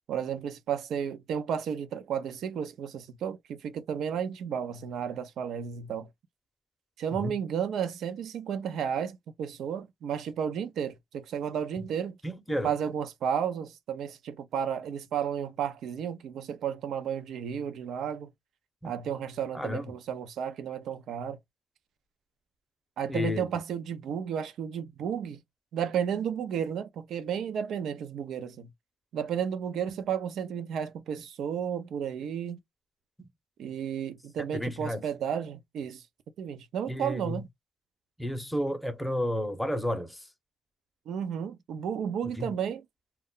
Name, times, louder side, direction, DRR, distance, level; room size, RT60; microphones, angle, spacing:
voice 1, 0.1-6.1 7.0-12.2 12.6-18.3 18.8-21.4 23.0-25.4 25.7-28.7 29.1-32.6 33.6-36.0 36.4-37.5 41.1-42.8, right 8 dB, 75° right, 0.5 m, -33 dB
voice 2, 12.2-12.7 18.8-18.9 19.5-20.0 23.1-23.5 33.2-33.3 34.5-35.0 36.9-37.4 38.2-40.3 42.4-42.6, left 1 dB, 5° left, 0.7 m, -32 dB
2.2 x 2.1 x 3.7 m
cardioid pair, 90°, 0 cm